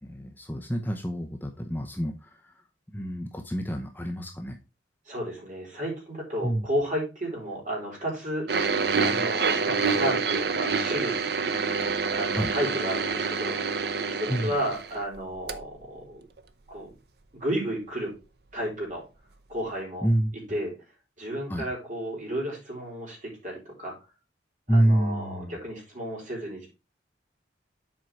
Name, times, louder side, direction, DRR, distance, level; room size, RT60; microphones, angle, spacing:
voice 1, 0.0-2.5 2.9-4.6 6.4-6.7 12.3-12.5 14.3-14.5 20.0-20.3 21.5-21.6 24.7-25.6, right 1 dB, 10° left, 3 dB, 0.7 m, -27 dB
voice 2, 5.1-11.3 12.1-16.3 16.7-16.9 17.3-18.1 18.5-19.0 19.5-20.1 20.5-20.7 21.2-24.0 24.7-26.7, equal, 40° right, -2 dB, 3.6 m, -33 dB
sound 1, 8.5-15.2 15.5-15.6 16.4-16.5, right 5 dB, 60° right, 0.7 m, -27 dB
7.6 x 4.6 x 4.6 m, 0.29 s
head